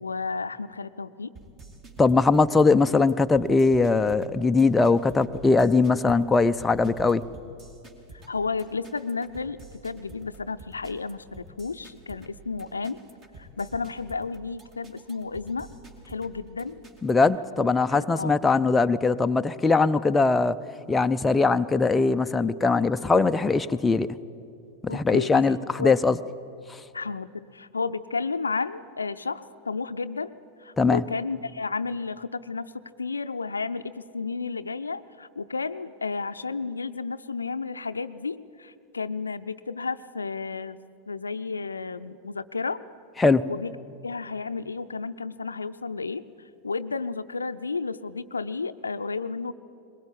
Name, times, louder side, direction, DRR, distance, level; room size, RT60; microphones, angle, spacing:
voice 1, 0.0-1.3 8.3-9.6 9.8-13.0 13.4-15.7 16.0-16.8 17.6-18.4 24.9-25.4 25.8-26.0 26.9-30.3 30.6-32.7 33.0-40.8 41.1-42.8 43.5-43.7 44.0-46.2 46.6-49.5, left 4 dB, 75° left, 12 dB, 0.6 m, -32 dB
sound 1, 1.3-17.3, right 2 dB, 30° right, 2.7 m, -48 dB
voice 2, 2.0-7.2 17.0-20.6 20.9-24.1 24.8-26.2 26.7-26.8 30.8-31.0 43.2-43.5, left 4 dB, 10° left, 9 dB, 0.6 m, -21 dB
21.0 x 21.0 x 8.7 m, 2.6 s
figure-of-eight pair, 90°, 0 cm